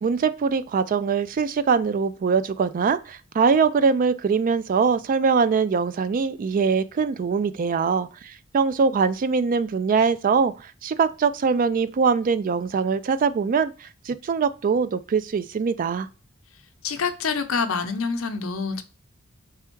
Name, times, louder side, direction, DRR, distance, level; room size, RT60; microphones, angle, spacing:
voice 1, 0.0-16.1, right 5 dB, 40° right, 0.3 m, -22 dB
voice 2, 16.8-18.8, left 5 dB, 70° left, 0.7 m, -26 dB
3.5 x 3.5 x 4.4 m
head